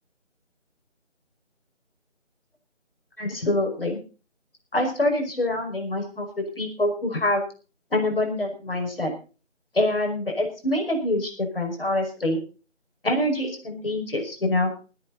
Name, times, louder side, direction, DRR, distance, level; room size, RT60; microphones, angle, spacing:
voice 1, 3.2-4.0 4.7-7.4 7.9-9.1 9.7-12.4 13.0-14.7, left 1 dB, 50° left, 3 dB, 5.5 m, -25 dB
23.0 x 9.6 x 4.1 m, 0.36 s
figure-of-eight pair, 175°, 37 cm